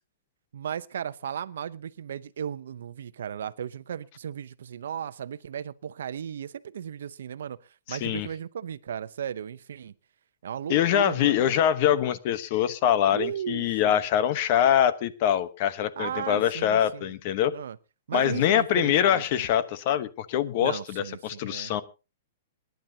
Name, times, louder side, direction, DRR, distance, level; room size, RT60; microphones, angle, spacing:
voice 1, 0.5-7.6 7.9-9.9 10.4-11.5 13.1-14.0 16.0-17.1 17.5-17.8 18.1-19.5 20.6-21.7, right 8 dB, 80° right, 0.7 m, -36 dB
voice 2, 7.9-8.3 10.7-17.5 18.1-21.8, left 10 dB, 45° left, 1.0 m, -24 dB
26.0 x 10.5 x 2.8 m
hypercardioid pair, 155°, 0 cm